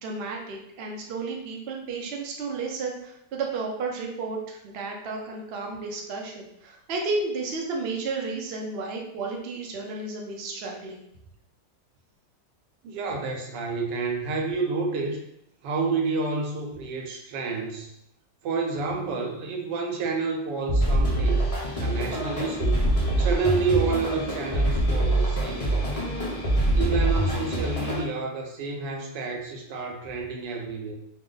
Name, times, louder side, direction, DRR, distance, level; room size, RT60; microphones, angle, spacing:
voice 1, 0.0-11.0, right 3 dB, 70° right, 0 dB, 0.5 m, -32 dB
voice 2, 12.8-15.2 15.6-17.9 18.4-21.5 21.8-22.8 23.2-26.0 26.7-31.0, right 4 dB, 90° right, 2 dB, 1.3 m, -29 dB
sound 1, 20.7-28.0, right 1 dB, 60° left, 0.3 m, -24 dB
2.8 x 2.1 x 3.8 m, 0.79 s
omnidirectional pair, 1.8 m